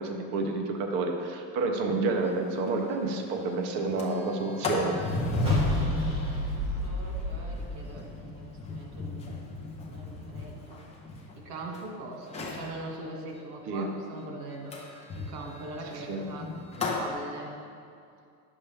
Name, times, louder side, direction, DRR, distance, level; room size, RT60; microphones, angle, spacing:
voice 1, 0.0-4.9 13.7-13.9 16.1-16.2, right 3 dB, 25° right, 2 dB, 0.3 m, -29 dB
Sliding door, 2.2-2.3 2.7-2.8 3.1-3.4 3.8-11.8 12.2-12.7 14.7-17.1, left 3 dB, 15° left, 0.7 m, -34 dB
sound 1, 5.4-8.7, equal, 10° right, 1.9 m, -32 dB
voice 2, 6.1-9.3 9.9-10.8 11.4-16.5 16.7-17.6, right 2 dB, 85° right, 0 dB, 1.8 m, -42 dB
10.0 x 7.0 x 3.3 m, 2.4 s
cardioid pair, 170°, 48 cm